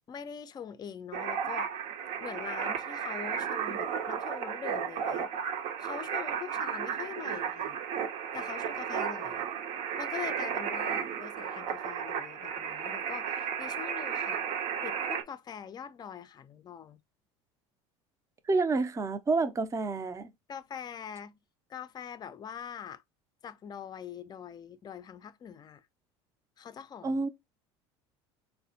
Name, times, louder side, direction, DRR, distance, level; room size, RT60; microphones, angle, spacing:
voice 1, 0.1-1.7 2.2-5.3 5.8-7.8 8.3-9.5 10.0-14.5 14.8-17.0 20.5-21.4 21.7-23.0 23.4-25.9 26.6-27.3, left 8 dB, 30° left, 0.4 m, -43 dB
sound 1, 1.1-15.2, right 7 dB, 60° right, 0.7 m, -34 dB
voice 2, 18.5-20.3 27.0-27.3, right 3 dB, 20° right, 0.5 m, -28 dB
3.9 x 2.1 x 2.7 m
hypercardioid pair, 90°, 14 cm